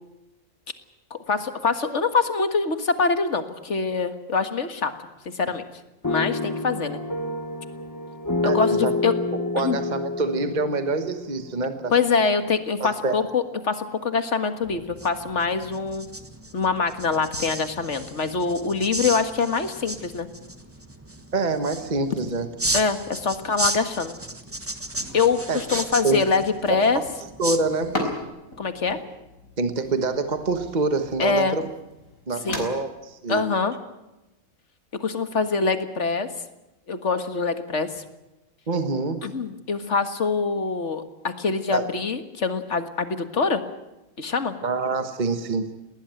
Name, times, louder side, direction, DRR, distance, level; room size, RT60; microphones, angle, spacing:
voice 1, 1.1-4.9 5.2-5.6 6.1-7.0 8.4-9.1 9.6-9.8 11.9-16.0 16.5-20.3 22.7-24.2 25.1-27.0 28.6-29.0 31.2-31.6 32.4-32.7 33.3-33.7 35.0-36.3 36.9-38.0 39.2-43.6 44.2-44.5, left 4 dB, 55° left, 9 dB, 2.0 m, -24 dB
sound 1, 6.0-12.1, left 3 dB, 15° left, 1.0 m, -28 dB
voice 2, 8.4-8.9 9.3-11.9 12.8-13.1 21.3-22.5 25.5-26.2 26.7-27.0 27.4-28.1 29.6-31.7 32.3-33.4 38.7-39.3 41.7-41.9 44.6-45.7, right 3 dB, 35° right, 8 dB, 1.5 m, -26 dB
sound 2, 14.6-28.2, right 1 dB, 10° right, 1.4 m, -34 dB
sound 3, 24.4-32.6, left 1 dB, 75° left, 4.9 m, -38 dB
20.0 x 18.5 x 9.1 m, 0.98 s
omnidirectional pair, 1.4 m